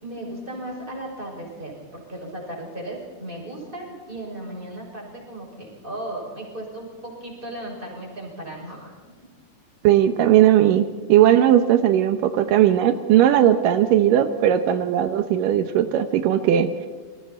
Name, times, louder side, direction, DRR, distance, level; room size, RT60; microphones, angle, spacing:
voice 1, 0.0-8.9, right 1 dB, 10° right, 0 dB, 6.2 m, -36 dB
voice 2, 9.8-16.7, right 11 dB, 85° right, 9 dB, 1.9 m, -18 dB
28.5 x 23.0 x 4.3 m, 1.5 s
omnidirectional pair, 5.2 m